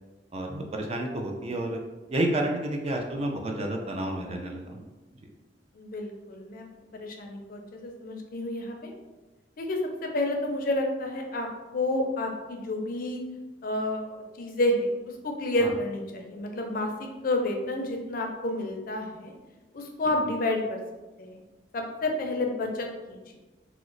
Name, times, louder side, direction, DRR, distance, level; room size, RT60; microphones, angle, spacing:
voice 1, 0.3-1.8 2.1-4.9 15.6-15.7, right 1 dB, 35° right, 2 dB, 0.4 m, -30 dB
voice 2, 5.7-6.7 6.9-8.9 9.6-11.5 11.7-13.2 13.6-14.9 15.2-19.3 19.7-20.8 21.2-21.4 21.7-23.4, left 1 dB, 50° left, 2 dB, 0.4 m, -30 dB
2.9 x 2.0 x 3.7 m, 1.1 s
head